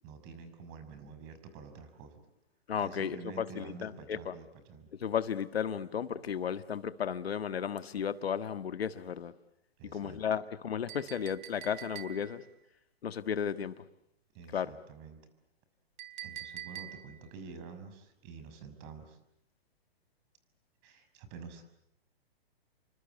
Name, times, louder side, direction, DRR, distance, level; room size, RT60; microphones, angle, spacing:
voice 1, 0.0-2.2 2.8-4.9 9.8-10.2 14.3-15.2 16.2-19.2 20.8-21.6, right 5 dB, 35° right, 6.1 m, -48 dB
voice 2, 2.7-4.3 5.0-9.3 9.9-12.4 13.0-13.8 14.5-14.7, left 8 dB, 75° left, 1.7 m, -34 dB
Chink clink, 10.9-12.5 16.0-17.3, right 11 dB, 50° right, 3.6 m, -45 dB
29.0 x 24.5 x 8.4 m
hypercardioid pair, 135°, 31 cm